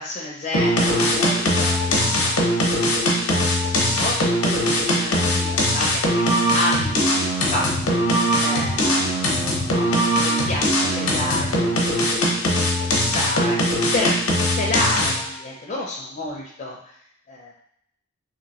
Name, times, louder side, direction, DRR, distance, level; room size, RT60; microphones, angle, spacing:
voice 1, 0.0-2.5 3.2-7.0 7.5-8.0 8.4-9.9 10.2-14.2 14.5-16.9 17.3-17.5, left 1 dB, 35° left, -3 dB, 0.5 m, -30 dB
sound 1, 0.5-15.3, equal, 85° left, 0.8 m, -21 dB
2.9 x 2.9 x 2.9 m, 0.70 s
head